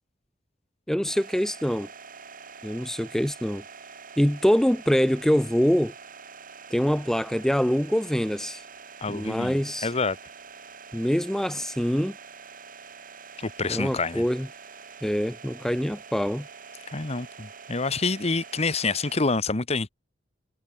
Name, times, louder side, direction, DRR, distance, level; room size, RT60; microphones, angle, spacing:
voice 1, 0.9-1.9 2.6-3.6 4.2-5.9 6.7-8.7 9.1-9.9 10.9-12.2 13.7-14.5 15.0-16.5, equal, 5° left, 0.4 m, -24 dB
sound 1, 1.1-19.2, right 5 dB, 50° right, 5.7 m, -45 dB
voice 2, 9.0-10.2 13.4-14.2 16.9-19.9, left 3 dB, 35° left, 1.2 m, -27 dB
head